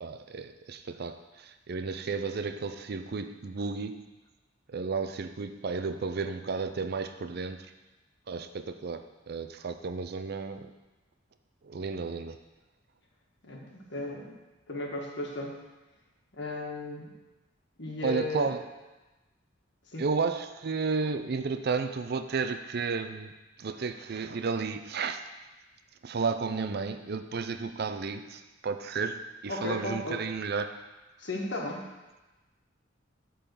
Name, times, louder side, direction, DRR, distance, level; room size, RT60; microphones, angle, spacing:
voice 1, 0.0-4.1 4.7-7.7 8.3-10.7 11.6-12.4 18.0-18.7 20.0-23.3 23.6-25.2 26.0-30.8, right 4 dB, 55° right, 9 dB, 0.5 m, -33 dB
voice 2, 13.4-14.3 14.7-15.6 16.3-17.1 17.8-18.5 19.9-20.0 29.5-30.2 31.2-31.8, left 2 dB, 65° left, -1 dB, 1.6 m, -35 dB
8.8 x 3.9 x 6.8 m, 1.1 s
head